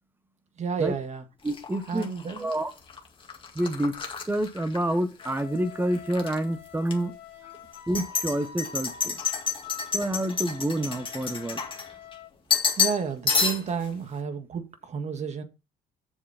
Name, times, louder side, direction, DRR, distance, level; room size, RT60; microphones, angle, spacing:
voice 1, 0.6-1.3 1.9-2.5 12.8-15.4, right 6 dB, 40° right, 1.6 m, -31 dB
voice 2, 1.4-2.1 2.4-2.7 3.5-4.0 4.3-7.1 7.9-9.2 9.9-11.6, right 1 dB, 10° right, 1.1 m, -28 dB
sound 1, 1.5-5.4 5.7-6.4 6.9-7.0 7.7-12.1 12.5-13.0 13.3-13.9, left 5 dB, 30° left, 2.0 m, -29 dB
Wind instrument woodwind instrument, 5.2-12.3, left 9 dB, 85° left, 1.9 m, -46 dB
7.4 x 7.2 x 4.1 m
cardioid pair, 110°, 17 cm